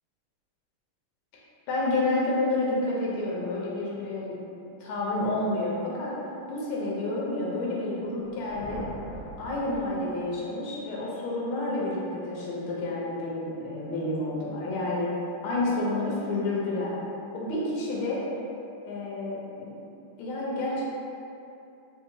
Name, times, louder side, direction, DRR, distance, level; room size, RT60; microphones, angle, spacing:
voice 1, 1.7-4.4 4.8-6.1 6.5-8.8 9.4-15.1 15.4-16.9 17.3-18.2 18.8-19.7 20.2-20.8, left 2 dB, 75° left, -5 dB, 1.4 m, -29 dB
sound 1, 8.1-10.6, right 1 dB, 50° left, 0.9 m, -43 dB
3.6 x 2.7 x 2.6 m, 2.7 s
omnidirectional pair, 2.4 m